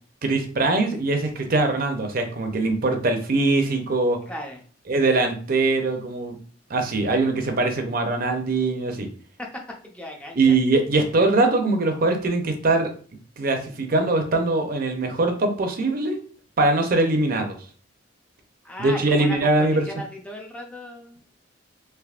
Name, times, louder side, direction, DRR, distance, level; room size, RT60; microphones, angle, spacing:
voice 1, 0.2-4.2 4.9-6.4 6.7-9.1 10.3-12.9 13.4-16.2 16.6-17.6 18.8-19.8, right 2 dB, 50° right, 5 dB, 0.6 m, -22 dB
voice 2, 4.3-4.6 9.4-10.6 18.6-21.2, left 1 dB, 5° left, 0 dB, 0.5 m, -36 dB
3.4 x 3.0 x 2.4 m, 0.42 s
head